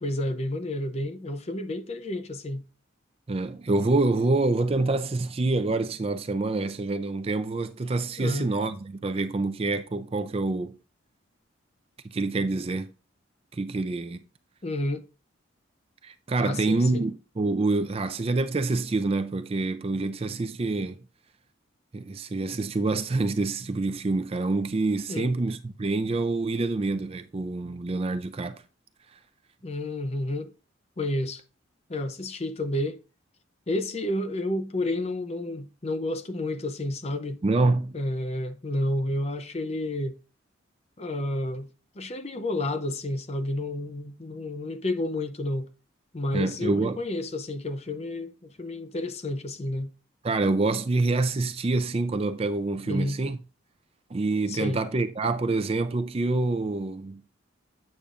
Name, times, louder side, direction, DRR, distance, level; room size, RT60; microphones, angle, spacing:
voice 1, 0.0-2.6 8.2-8.5 14.6-15.0 16.4-17.0 20.0-20.1 25.1-25.3 29.6-30.5 31.0-31.4 31.9-33.0 33.7-37.4 37.9-40.2 41.0-41.7 42.0-45.7 46.1-49.9 52.9-53.2 54.5-54.8, left 1 dB, 30° left, 0.5 m, -30 dB
voice 2, 3.3-10.7 12.0-12.9 13.5-14.2 16.0-21.0 21.9-28.6 37.4-38.0 46.3-47.0 50.2-53.4 54.1-57.2, right 3 dB, 30° right, 0.4 m, -26 dB
8.5 x 6.6 x 2.5 m
head